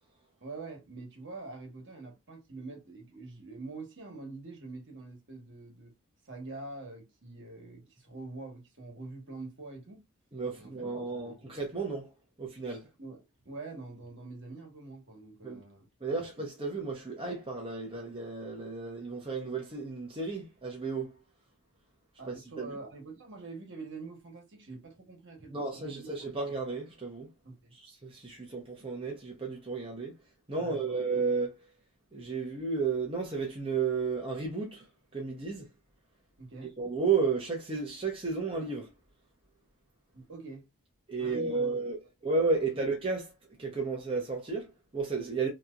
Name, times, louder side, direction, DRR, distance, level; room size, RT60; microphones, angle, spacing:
voice 1, 0.4-5.9 6.2-10.0 10.6-11.6 13.0-15.9 22.2-26.3 27.4-27.7 30.5-31.0 36.4-36.7 40.1-40.7 41.2-41.8, right 3 dB, 55° right, 1.4 m, -45 dB
voice 2, 10.3-12.1 12.4-12.8 15.4-15.6 16.0-21.1 22.3-22.7 25.5-27.3 27.8-30.1 30.5-31.6 32.1-34.8 35.1-35.7 36.8-38.9 41.1-42.0 42.2-43.3 43.6-45.5, right 4 dB, 25° right, 0.8 m, -33 dB
3.3 x 2.9 x 2.4 m
head